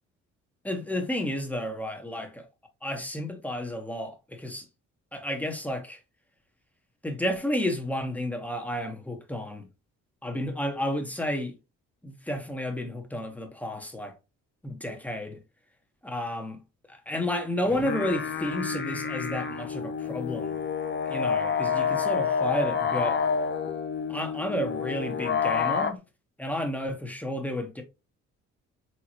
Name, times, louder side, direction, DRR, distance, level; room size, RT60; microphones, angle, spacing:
voice 1, 0.6-2.5 2.8-4.7 5.1-6.0 7.0-9.7 10.2-11.6 12.0-14.2 14.6-15.4 16.0-16.6 16.9-20.6 21.1-23.3 24.1-26.0 26.4-27.8, left 1 dB, 5° left, 1.2 m, -31 dB
sound 1, 17.7-25.9, left 6 dB, 35° left, 0.8 m, -28 dB
4.4 x 3.8 x 2.9 m
cardioid pair, 90°, 30 cm